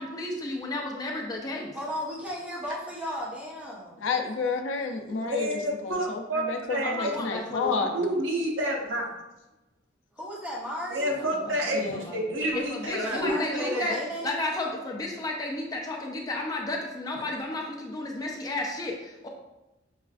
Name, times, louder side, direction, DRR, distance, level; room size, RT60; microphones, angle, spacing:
voice 1, 0.0-1.7 6.8-8.2 11.2-14.0 14.2-19.3, left 2 dB, 20° left, 0 dB, 0.4 m, -33 dB
voice 2, 1.7-4.0 10.1-11.1 13.0-14.3, equal, 5° right, -6 dB, 0.9 m, -35 dB
voice 3, 4.0-5.5 5.8-7.9 11.7-12.1, left 4 dB, 80° left, 4 dB, 0.4 m, -30 dB
voice 4, 5.2-9.1 10.9-13.9, right 1 dB, 80° right, -1 dB, 0.8 m, -29 dB
5.6 x 2.4 x 2.4 m, 0.98 s
head